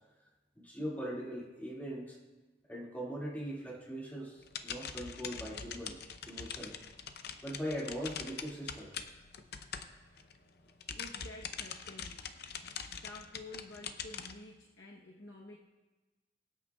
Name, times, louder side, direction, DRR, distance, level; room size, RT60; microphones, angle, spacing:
voice 1, 0.6-2.2 2.7-6.0 6.3-6.7 7.4-9.0, equal, 10° left, -5 dB, 2.2 m, -40 dB
sound 1, 4.4-10.4 10.7-14.3, left 7 dB, 60° left, 0.7 m, -43 dB
voice 2, 10.9-12.2 12.6-15.6, left 2 dB, 80° left, -1 dB, 1.0 m, -50 dB
24.5 x 8.3 x 2.3 m, 1.2 s
head